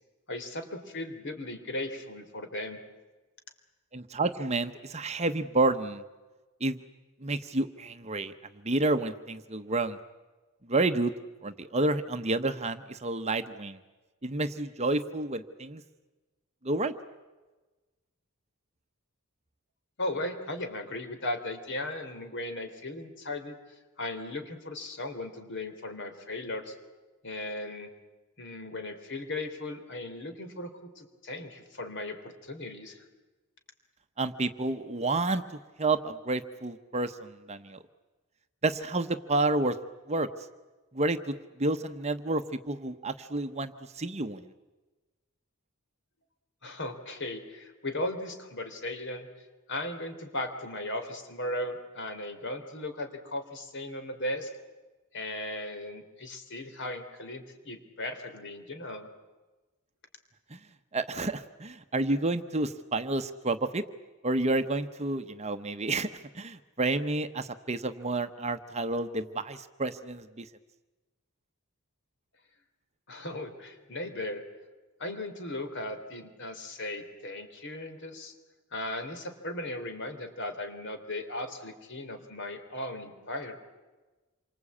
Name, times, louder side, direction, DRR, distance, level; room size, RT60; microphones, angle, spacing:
voice 1, 0.3-2.8 20.0-23.6 24.0-26.8 27.2-27.9 28.4-33.0 46.6-49.3 49.7-54.5 55.1-59.1 73.1-74.4 75.0-78.3 78.7-83.6, left 1 dB, 55° left, 7 dB, 3.5 m, -37 dB
voice 2, 3.9-6.0 6.6-6.8 7.2-8.3 8.6-10.0 10.7-11.1 11.4-13.8 14.2-15.8 16.6-16.9 34.2-35.4 35.8-37.8 38.6-39.8 40.1-40.3 40.9-44.5 60.5-60.6 60.9-63.8 64.2-66.1 66.3-70.5, right 2 dB, 30° right, 9 dB, 1.0 m, -30 dB
27.5 x 24.5 x 8.6 m, 1.2 s
head